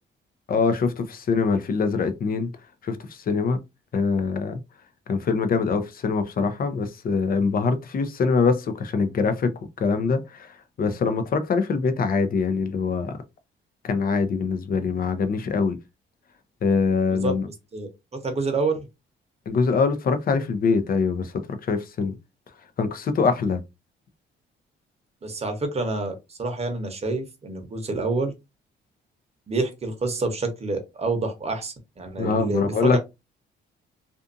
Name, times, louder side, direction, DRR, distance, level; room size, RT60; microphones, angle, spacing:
voice 1, 0.5-2.5 2.8-3.6 3.9-4.6 5.1-13.1 13.8-15.8 16.6-17.5 19.5-22.1 22.8-23.6 32.2-33.0, left 4 dB, 45° left, 0.6 m, -24 dB
voice 2, 17.2-18.9 25.2-28.3 29.5-33.0, right 3 dB, 30° right, 0.9 m, -28 dB
2.6 x 2.4 x 2.5 m
cardioid pair, 90°, 20 cm